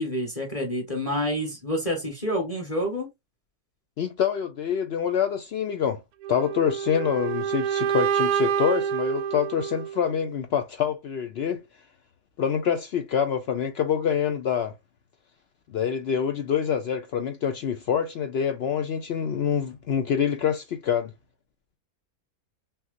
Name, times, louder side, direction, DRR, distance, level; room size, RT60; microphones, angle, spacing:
voice 1, 0.0-3.1, equal, 25° left, 1.1 m, -28 dB
voice 2, 4.0-6.0 6.3-11.6 12.4-14.7 15.7-21.1, left 8 dB, 75° left, 0.5 m, -26 dB
sound 1, 6.2-10.2, right 8 dB, 80° right, 1.1 m, -27 dB
5.6 x 2.0 x 2.5 m
omnidirectional pair, 1.6 m